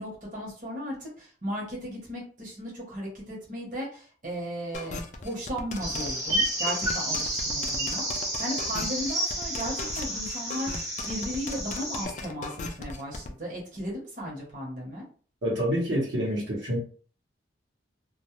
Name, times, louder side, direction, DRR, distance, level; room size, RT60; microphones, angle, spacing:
voice 1, 0.0-15.0, equal, 45° right, 0.9 m, -36 dB
sound 1, 4.7-13.3, left 3 dB, 40° left, 0.3 m, -37 dB
sound 2, 5.8-12.0, right 1 dB, 15° right, 0.6 m, -31 dB
voice 2, 15.4-16.8, equal, 75° right, 0.9 m, -27 dB
2.2 x 2.0 x 2.9 m
head